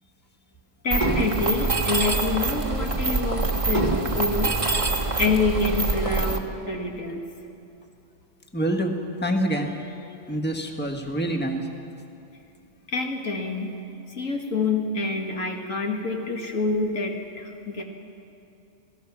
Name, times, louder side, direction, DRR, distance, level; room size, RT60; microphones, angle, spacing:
voice 1, 0.8-4.6 5.2-7.3 12.9-13.7 14.1-17.8, left 3 dB, 90° left, 2 dB, 2.3 m, -27 dB
Mechanisms, 0.9-6.4, right 3 dB, 25° right, 1.3 m, -25 dB
voice 2, 8.5-11.7, right 1 dB, 10° left, 3 dB, 1.4 m, -27 dB
27.5 x 17.5 x 6.1 m, 2.7 s
omnidirectional pair, 1.3 m